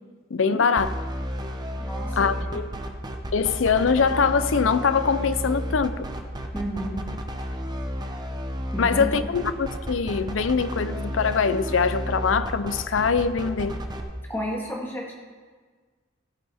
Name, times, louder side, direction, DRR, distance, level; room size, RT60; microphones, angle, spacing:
voice 1, 0.3-0.9 2.2-2.7 3.3-6.0 8.8-13.8, left 5 dB, 90° left, 13 dB, 0.6 m, -23 dB
sound 1, 0.8-14.0, equal, 20° right, 0.8 m, -32 dB
voice 2, 1.8-2.2 6.5-7.0 8.7-9.1 14.3-15.1, equal, 10° left, -2 dB, 1.8 m, -31 dB
17.0 x 8.5 x 3.6 m, 1.5 s
head